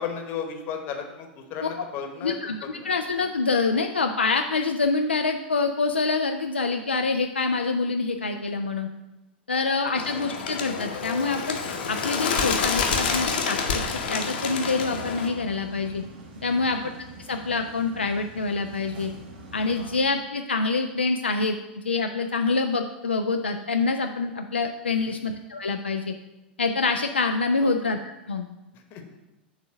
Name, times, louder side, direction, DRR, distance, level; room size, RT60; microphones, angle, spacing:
voice 1, 0.0-2.9 9.5-9.8 16.4-16.7 19.8-20.0 24.9-25.2 27.6-27.7 28.7-29.2, left 7 dB, 40° left, 4 dB, 1.0 m, -36 dB
voice 2, 2.2-8.9 9.5-11.6 11.9-13.8 14.1-16.0 16.4-16.8 17.2-19.1 19.5-21.6 21.8-26.1 26.6-28.0 28.3-28.5, left 4 dB, 80° left, 4 dB, 0.4 m, -26 dB
Bird, 10.0-15.3, left 5 dB, 60° left, 0.9 m, -28 dB
sound 1, 11.7-20.0, right 2 dB, 60° right, 1.2 m, -44 dB
6.3 x 3.7 x 6.1 m, 0.98 s
figure-of-eight pair, 90°, 6 cm